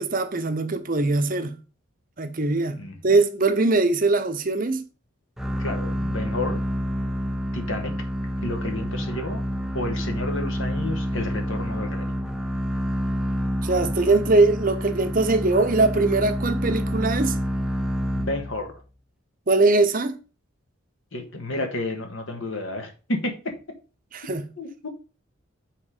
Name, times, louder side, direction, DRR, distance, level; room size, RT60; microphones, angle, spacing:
voice 1, 0.0-1.6 2.2-4.8 13.6-17.4 19.5-20.2 24.1-24.5, right 3 dB, 40° right, 0.8 m, -21 dB
sound 1, 5.4-18.8, equal, ahead, 0.5 m, -28 dB
voice 2, 5.6-6.6 7.5-7.9 8.4-9.4 9.7-12.1 18.1-18.8 21.1-23.5 24.6-24.9, left 2 dB, 65° left, 1.5 m, -31 dB
7.5 x 3.8 x 5.1 m
head